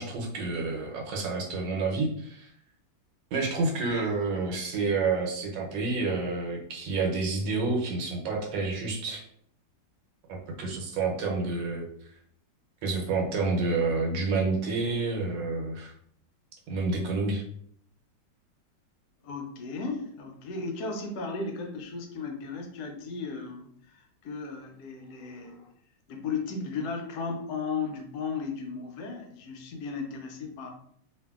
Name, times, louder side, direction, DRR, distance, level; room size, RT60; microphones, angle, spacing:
voice 1, 0.0-2.5 3.3-9.2 10.6-11.9 12.8-15.9 16.7-17.4, right 3 dB, 80° right, 0 dB, 1.3 m, -29 dB
voice 2, 19.2-25.7 26.1-30.7, left 4 dB, 70° left, 2 dB, 1.0 m, -35 dB
2.8 x 2.6 x 2.3 m, 0.66 s
omnidirectional pair, 2.0 m